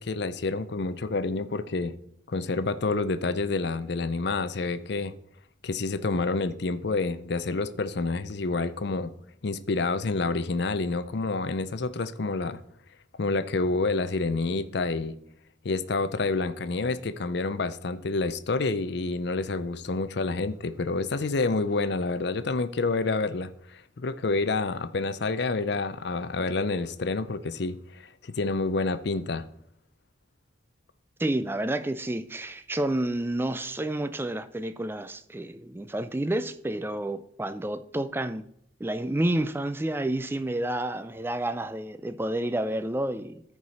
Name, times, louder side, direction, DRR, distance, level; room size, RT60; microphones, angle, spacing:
voice 1, 0.0-1.9 2.3-5.1 5.6-9.1 9.4-12.6 13.2-15.2 15.6-29.4, left 3 dB, 55° left, 0.5 m, -28 dB
voice 2, 31.2-38.5 38.8-43.4, right 1 dB, 10° right, 0.3 m, -30 dB
14.0 x 4.8 x 4.2 m
head